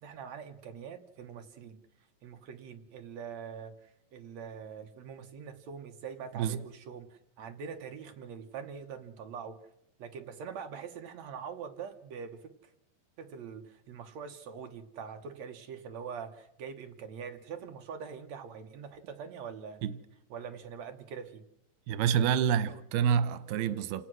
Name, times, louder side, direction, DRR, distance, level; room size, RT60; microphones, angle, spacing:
voice 1, 0.0-1.8 2.2-9.6 10.0-12.7 13.2-19.8 20.3-21.4, right 6 dB, 65° right, 1.9 m, -43 dB
voice 2, 21.9-24.1, right 8 dB, 90° right, 2.9 m, -28 dB
29.0 x 17.5 x 6.2 m
omnidirectional pair, 4.3 m